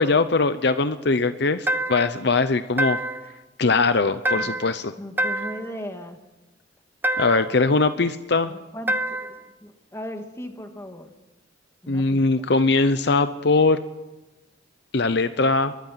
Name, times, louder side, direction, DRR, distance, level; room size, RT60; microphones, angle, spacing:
voice 1, 0.0-3.0 3.6-4.9 7.2-8.5 11.9-13.8 14.9-15.7, left 3 dB, 60° left, 11 dB, 0.8 m, -21 dB
sound 1, 1.7-2.2 2.8-3.3 4.3-4.8 5.2-5.7 7.0-7.6 8.9-9.4, right 1 dB, 10° right, 0.9 m, -26 dB
voice 2, 5.0-6.2 8.5-11.1 11.8-12.5, equal, 15° left, 5 dB, 2.1 m, -38 dB
25.0 x 21.5 x 5.9 m, 1.1 s
head